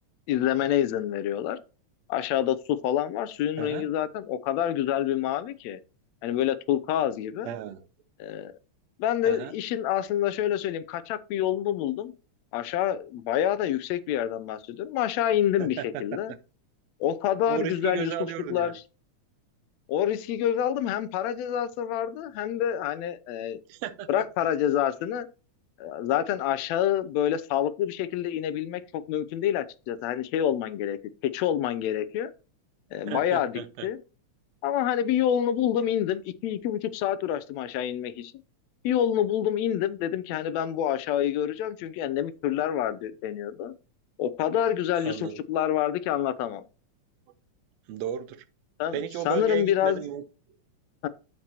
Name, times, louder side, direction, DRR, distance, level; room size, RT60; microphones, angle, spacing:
voice 1, 0.3-1.6 2.1-5.8 6.2-7.5 8.2-8.5 9.0-12.1 12.5-16.3 17.0-18.1 18.5-18.8 19.9-23.6 24.1-25.3 25.8-31.0 31.3-32.3 32.9-34.0 34.6-38.3 38.8-43.7 44.2-46.6 48.8-50.1 51.0-51.1, left 10 dB, 80° left, 1.8 m, -27 dB
voice 2, 7.5-7.9 9.3-9.5 15.6-16.4 17.5-18.7 23.7-24.3 33.1-33.9 45.0-45.4 47.9-48.4 48.9-50.2, right 11 dB, 75° right, 1.8 m, -34 dB
13.5 x 4.7 x 2.9 m
omnidirectional pair, 3.4 m